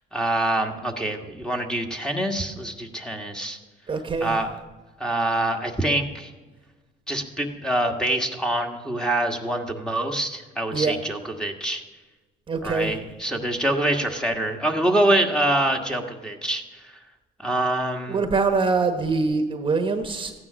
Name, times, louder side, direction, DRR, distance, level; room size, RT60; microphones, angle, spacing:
voice 1, 0.1-3.6 4.2-4.5 5.0-6.3 7.1-11.8 12.6-16.6 17.4-18.2, right 1 dB, 5° left, 3 dB, 1.6 m, -25 dB
voice 2, 3.9-4.4 10.7-11.0 12.5-12.9 18.1-20.3, right 4 dB, 30° right, 7 dB, 1.2 m, -24 dB
15.0 x 9.6 x 6.2 m, 1.2 s
cardioid pair, 110°, 17 cm